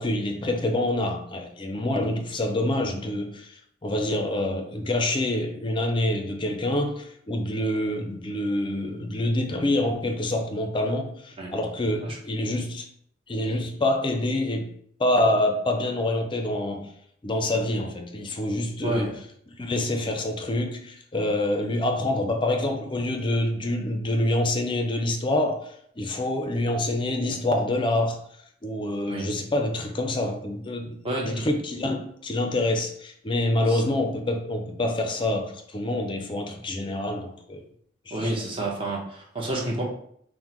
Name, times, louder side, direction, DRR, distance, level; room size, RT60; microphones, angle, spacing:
voice 1, 0.0-12.9 13.3-14.7 15.0-16.9 17.2-19.1 19.6-28.2 28.6-37.6 38.1-38.3, left 1 dB, 25° left, 4 dB, 0.5 m, -26 dB
voice 2, 31.0-31.5 33.7-33.8 38.1-39.8, right 1 dB, 30° right, -2 dB, 0.8 m, -29 dB
5.5 x 2.1 x 3.0 m, 0.67 s
head